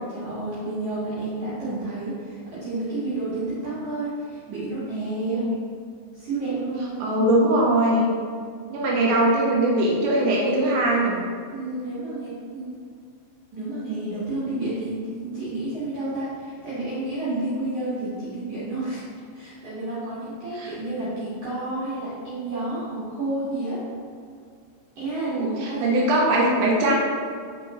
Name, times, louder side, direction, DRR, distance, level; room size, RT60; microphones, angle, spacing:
voice 1, 0.1-5.4 6.1-7.1 11.5-12.7 13.5-19.0 19.3-23.8 25.0-25.9, right 2 dB, 55° right, -12 dB, 2.6 m, -30 dB
voice 2, 7.0-8.1 8.7-11.2 20.6-20.7 25.2-27.0, right 1 dB, 80° right, -3 dB, 3.0 m, -21 dB
7.0 x 5.8 x 3.0 m, 2.1 s
omnidirectional pair, 5.5 m